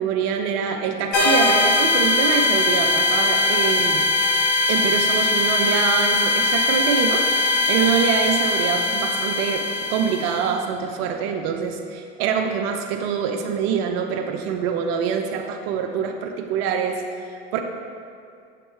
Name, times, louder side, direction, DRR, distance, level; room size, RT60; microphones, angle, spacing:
voice 1, 0.0-4.1 4.7-17.0 17.3-17.6, right 7 dB, 70° right, 3 dB, 0.5 m, -25 dB
sound 1, 1.1-10.5, left 2 dB, 70° left, 1.3 m, -20 dB
7.1 x 2.9 x 4.6 m, 2.3 s
hypercardioid pair, 80°, 32 cm